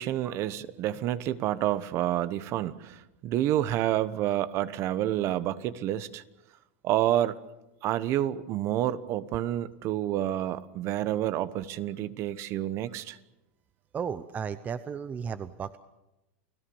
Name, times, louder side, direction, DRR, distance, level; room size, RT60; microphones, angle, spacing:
voice 1, 0.0-6.2 6.8-7.4 7.8-13.2, right 12 dB, 40° right, 16 dB, 1.1 m, -29 dB
voice 2, 13.9-15.8, right 7 dB, 20° right, 13 dB, 0.7 m, -34 dB
29.5 x 17.5 x 7.1 m, 0.96 s
supercardioid pair, 135°, 7 cm